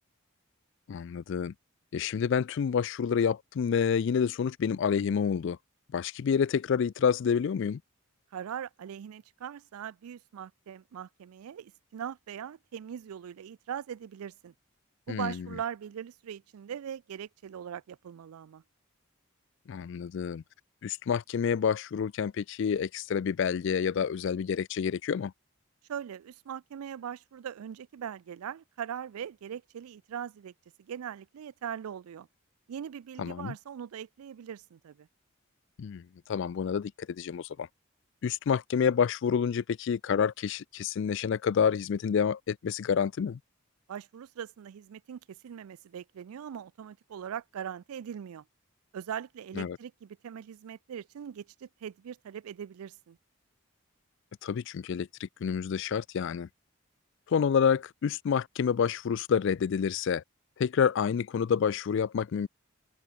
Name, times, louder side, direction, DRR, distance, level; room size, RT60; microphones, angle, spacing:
voice 1, 0.9-1.5 1.9-5.6 5.9-7.8 15.1-15.5 19.7-20.4 20.8-25.3 33.2-33.5 35.8-36.0 36.3-37.7 38.2-43.4 49.6-49.8 54.4-56.5 57.3-60.2 60.6-62.5, left 7 dB, 55° left, 0.3 m, -28 dB
voice 2, 8.3-14.5 15.1-18.6 25.9-30.5 30.8-32.3 32.7-35.1 43.9-48.4 48.9-53.2, right 8 dB, 85° right, 0.4 m, -40 dB
open air
head